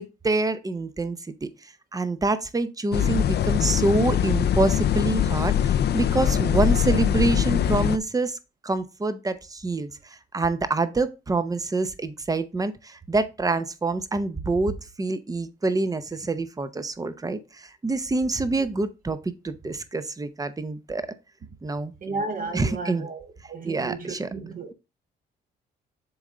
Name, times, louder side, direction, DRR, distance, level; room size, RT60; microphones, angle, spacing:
voice 1, 0.0-1.5 1.9-8.4 8.6-21.1 21.6-21.9 22.5-23.1 23.6-24.3, right 3 dB, 20° right, 0.8 m, -26 dB
sound 1, 2.9-8.0, left 9 dB, 55° left, 0.5 m, -22 dB
voice 2, 22.0-24.7, right 3 dB, 45° right, 1.5 m, -33 dB
7.0 x 3.7 x 3.9 m
cardioid pair, 90°, 20 cm